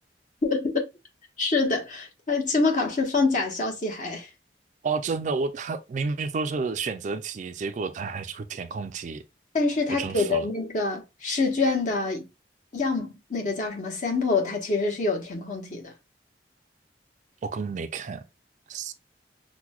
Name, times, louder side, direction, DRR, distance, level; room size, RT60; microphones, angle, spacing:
voice 1, 0.4-0.7 1.4-4.3 9.5-12.3 12.7-15.9, left 3 dB, 45° left, 0.9 m, -26 dB
voice 2, 4.8-9.2 9.9-10.5 17.4-18.2 18.7-18.9, right 4 dB, 45° right, 0.3 m, -30 dB
5.8 x 2.1 x 2.2 m
head